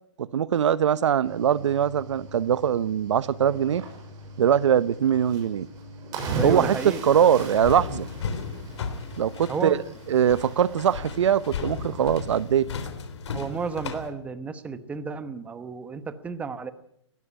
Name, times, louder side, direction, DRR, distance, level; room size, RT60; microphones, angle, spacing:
voice 1, 0.2-3.8 4.4-5.7 6.4-6.8 7.0-8.1 9.2-9.8 10.1-12.7, right 9 dB, 75° right, 0.9 m, -22 dB
Cricket / Waves surf, 1.2-12.5, right 3 dB, 25° right, 6.1 m, -38 dB
voice 2, 6.4-7.0 9.5-9.8 13.3-16.7, right 5 dB, 10° right, 1.0 m, -32 dB
sound 1, 7.4-14.1, left 5 dB, 65° left, 3.8 m, -35 dB
19.5 x 15.5 x 9.9 m
hypercardioid pair, 155°, 16 cm